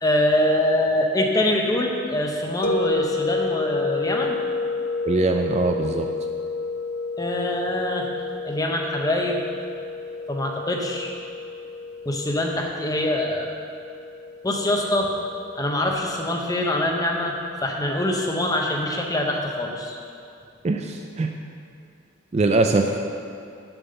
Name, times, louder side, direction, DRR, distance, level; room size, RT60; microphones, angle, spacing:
voice 1, 0.0-4.4 7.2-8.1 8.4-9.4 10.3-11.1 12.0-13.5 14.4-15.1 15.6-17.3 17.6-20.0, left 1 dB, 15° left, 0 dB, 0.7 m, -24 dB
sound 1, 2.6-17.6, left 3 dB, 45° left, 0.5 m, -31 dB
voice 2, 5.0-6.1 20.6-21.3 22.3-23.0, right 3 dB, 30° right, 4 dB, 0.3 m, -22 dB
6.9 x 5.5 x 6.5 m, 2.5 s
head